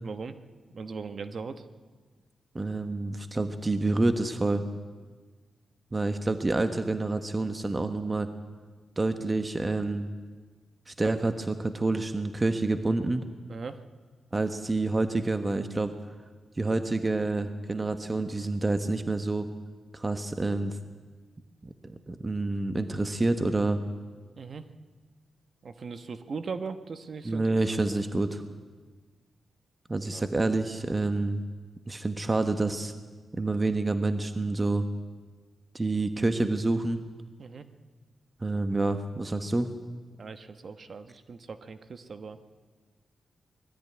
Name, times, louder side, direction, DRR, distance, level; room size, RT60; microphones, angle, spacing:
voice 1, 0.0-0.3 0.7-1.7 13.5-13.8 24.3-24.6 25.6-27.5 30.1-30.3 37.4-37.6 40.1-42.4, right 5 dB, 55° right, 10 dB, 1.1 m, -39 dB
voice 2, 2.5-4.6 5.9-8.3 9.0-10.1 10.9-13.3 14.3-15.9 16.6-19.5 19.9-20.8 21.6-23.8 27.2-28.4 29.9-31.4 31.9-32.9 33.3-34.9 35.7-37.0 38.4-39.7, right 2 dB, 25° right, 8 dB, 1.2 m, -28 dB
20.5 x 13.0 x 9.7 m, 1.4 s
cardioid pair, 80°, 0 cm